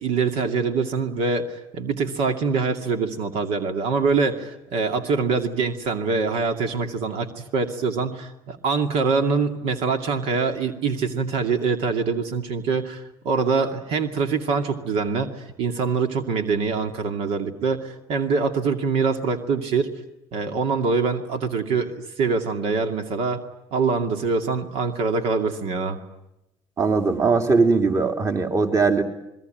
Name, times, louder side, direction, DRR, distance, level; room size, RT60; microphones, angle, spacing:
voice 1, 0.0-19.9 20.3-23.4 23.7-26.0, right 4 dB, 70° right, 5 dB, 2.5 m, -24 dB
voice 2, 26.8-29.0, right 4 dB, 30° right, 5 dB, 2.9 m, -20 dB
28.0 x 21.5 x 9.2 m, 0.90 s
supercardioid pair, 100°, 11 cm